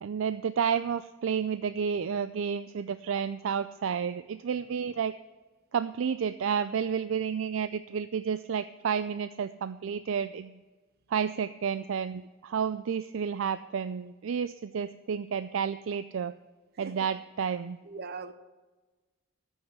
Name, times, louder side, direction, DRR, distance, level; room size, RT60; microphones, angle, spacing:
voice 1, 0.0-5.1 5.7-10.6 11.1-16.3 16.8-17.8, right 7 dB, 65° right, 12 dB, 0.4 m, -31 dB
voice 2, 17.8-18.3, right 4 dB, 50° right, 11 dB, 0.8 m, -39 dB
14.0 x 5.5 x 7.8 m, 1.2 s
head